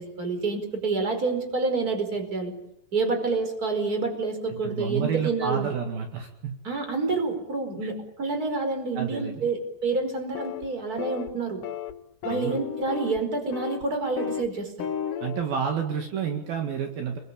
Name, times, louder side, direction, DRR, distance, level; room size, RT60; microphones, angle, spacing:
voice 1, 0.0-2.5 2.9-5.7 6.6-11.6 12.2-14.9, right 3 dB, 20° right, 6 dB, 4.9 m, -28 dB
voice 2, 4.5-6.5 7.8-7.9 8.9-9.5 12.3-12.6 15.2-17.2, right 7 dB, 65° right, 4 dB, 3.8 m, -30 dB
sound 1, 10.3-10.7 11.0-11.3 11.6-11.9 12.2-13.2 13.5-13.8 14.2-14.5 14.8-15.4, left 9 dB, 65° left, 2.4 m, -33 dB
29.0 x 21.5 x 8.9 m, 0.79 s
omnidirectional pair, 4.8 m